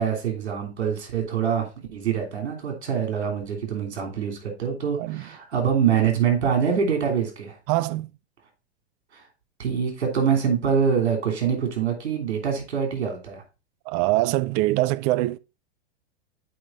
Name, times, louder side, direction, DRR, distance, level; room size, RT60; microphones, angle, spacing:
voice 1, 0.0-7.6 9.1-9.3 9.6-13.4, right 7 dB, 80° right, 3.3 m, -25 dB
voice 2, 7.7-8.1 13.9-15.4, right 18 dB, 40° right, 0.5 m, -23 dB
7.8 x 5.3 x 3.8 m
hypercardioid pair, 105°, 32 cm